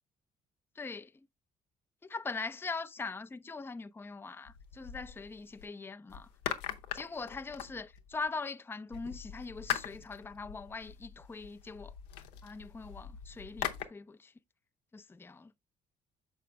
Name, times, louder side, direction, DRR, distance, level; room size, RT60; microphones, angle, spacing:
voice 1, 0.8-1.1 2.0-6.3 6.9-11.9 12.4-14.3 14.9-15.5, left 4 dB, 10° left, 0.5 m, -41 dB
sound 1, 4.5-5.7 6.1-8.3 8.9-13.9, left 10 dB, 80° left, 0.7 m, -41 dB
6.6 x 5.2 x 3.3 m
hypercardioid pair, 50°, 20 cm